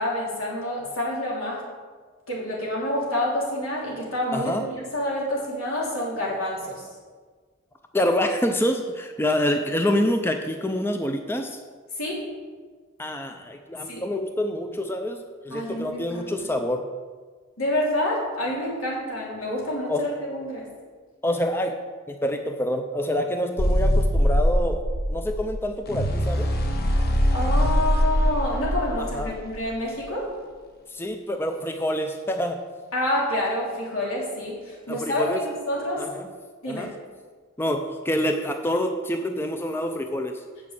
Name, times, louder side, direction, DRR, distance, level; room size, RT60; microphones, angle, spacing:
voice 1, 0.0-1.6 2.3-6.8 12.0-12.2 13.9-14.0 15.5-16.5 17.6-20.7 27.3-30.3 32.9-36.0 36.6-36.9, left 1 dB, 85° left, -4 dB, 3.1 m, -28 dB
voice 2, 4.3-4.6 7.9-11.6 13.0-16.8 19.9-20.1 21.2-21.7 22.1-24.8 25.1-26.5 29.0-29.4 30.9-32.6 34.9-35.4 36.0-36.3 36.7-36.9 37.6-40.4, left 1 dB, 10° left, 5 dB, 0.5 m, -26 dB
sound 1, 23.6-29.7, equal, 50° left, 1.1 m, -22 dB
7.6 x 6.2 x 7.4 m, 1.5 s
head